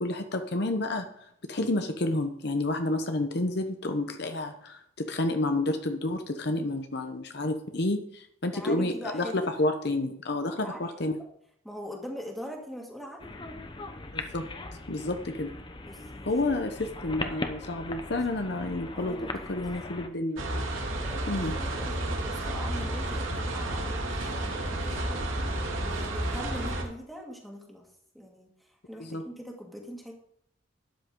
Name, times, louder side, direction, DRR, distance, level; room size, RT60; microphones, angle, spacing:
voice 1, 0.0-1.1 1.5-11.2 14.1-14.5 14.9-15.5 16.3-20.7 21.3-21.5 23.3-23.4 29.0-29.2, left 2 dB, 55° left, 6 dB, 0.9 m, -30 dB
voice 2, 8.5-9.5 10.5-11.2 11.6-13.4 15.0-15.2 15.9-16.3 18.9-19.6 21.0-25.2 25.7-27.8 28.1-30.1, equal, ahead, -1 dB, 2.1 m, -42 dB
sound 1, 13.2-20.1, left 2 dB, 25° left, 0.8 m, -39 dB
sound 2, 20.4-26.8, right 1 dB, 80° right, 2.3 m, -31 dB
12.5 x 10.5 x 3.8 m, 0.71 s
head